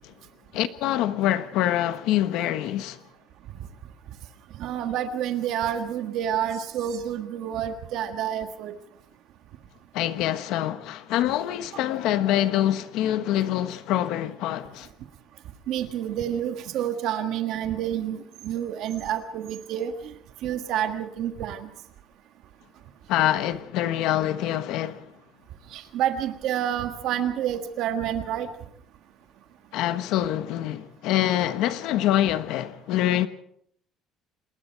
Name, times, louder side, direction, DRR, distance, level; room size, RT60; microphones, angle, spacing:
voice 1, 0.5-3.0 9.9-14.9 23.1-25.0 29.7-33.3, left 12 dB, 65° left, 1.2 m, -25 dB
voice 2, 4.6-8.8 15.7-19.9 20.4-21.7 25.7-28.5, right 10 dB, 55° right, 1.6 m, -28 dB
28.0 x 20.5 x 4.6 m
cardioid pair, 175°, 0 cm